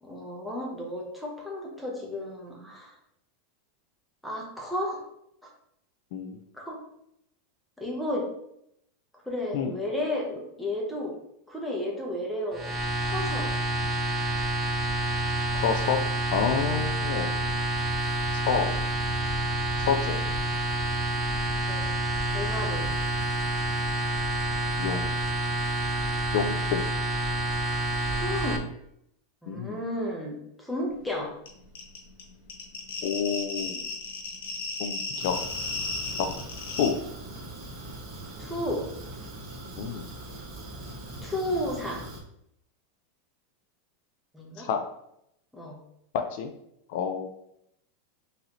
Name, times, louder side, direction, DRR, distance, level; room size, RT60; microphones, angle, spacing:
voice 1, 0.0-2.9 4.2-5.0 6.6-6.8 7.8-8.3 9.3-11.2 11.5-12.6 13.0-13.5 21.7-21.9 22.3-22.9 28.1-28.6 29.4-31.3 38.4-38.9 41.2-42.0 44.3-44.7 45.5-45.8, left 1 dB, ahead, -2 dB, 0.9 m, -33 dB
sound 1, 12.5-28.6, right 1 dB, 20° right, 0.5 m, -28 dB
voice 2, 15.5-16.0 16.3-17.4 18.3-18.7 19.8-20.2 24.8-25.2 26.3-26.9 29.5-29.8 33.0-33.9 34.8-35.4 36.2-36.3 36.8-37.0 39.8-40.1 44.6-44.8 46.1-46.5 46.9-47.3, left 7 dB, 60° left, 6 dB, 0.4 m, -28 dB
sound 2, 31.5-31.6 31.7-36.9, left 3 dB, 85° left, 1.0 m, -34 dB
Fire, 35.2-42.2, right 1 dB, 40° right, 1.2 m, -41 dB
3.9 x 2.7 x 3.0 m, 0.76 s
supercardioid pair, 140°, 0 cm